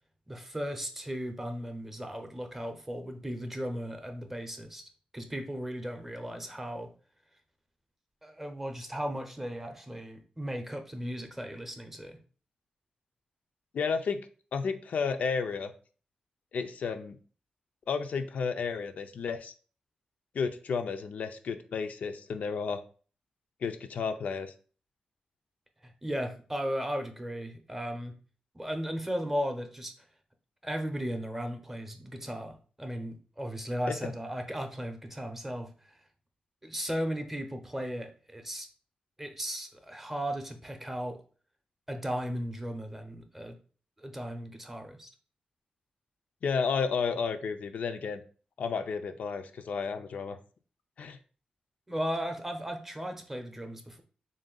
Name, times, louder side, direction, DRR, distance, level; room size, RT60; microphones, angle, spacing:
voice 1, 0.3-4.8 5.1-6.9 8.2-12.2 25.8-28.1 28.5-29.9 30.6-36.0 36.6-38.7 39.2-41.2 41.9-43.6 44.0-45.1 51.9-54.0, equal, 10° right, 5 dB, 0.6 m, -36 dB
voice 2, 13.7-14.2 14.5-15.7 16.5-17.2 17.9-19.5 20.3-22.8 23.6-24.5 33.9-34.0 46.4-48.2 48.6-50.4 51.0-51.2, left 5 dB, 70° left, 7 dB, 0.4 m, -32 dB
3.6 x 2.6 x 3.8 m, 0.39 s
wide cardioid pair, 110°, 3 cm